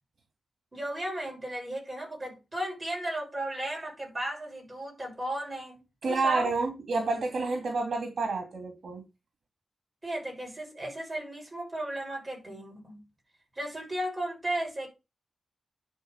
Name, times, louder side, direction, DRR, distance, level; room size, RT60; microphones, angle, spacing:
voice 1, 0.7-6.5 10.0-13.0 13.5-14.9, right 1 dB, 25° right, 6.7 m, -35 dB
voice 2, 6.0-9.0, right 3 dB, 65° right, 2.6 m, -29 dB
10.5 x 4.9 x 6.6 m
wide cardioid pair, 95°, 0 cm